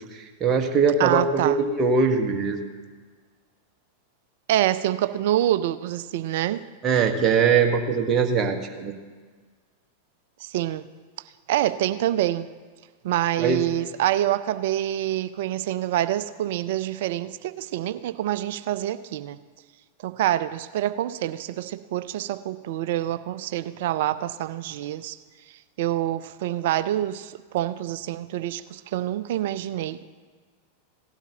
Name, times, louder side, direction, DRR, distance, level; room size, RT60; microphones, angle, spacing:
voice 1, 0.1-2.6 6.8-8.9 13.4-13.6, right 5 dB, 30° right, 3 dB, 1.4 m, -21 dB
voice 2, 1.0-1.6 4.5-6.6 10.4-10.9 11.5-12.5 13.0-19.4 20.0-25.2 25.8-30.0, right 13 dB, 60° right, 14 dB, 0.5 m, -26 dB
17.5 x 12.0 x 2.9 m, 1.5 s
figure-of-eight pair, 95°, 0 cm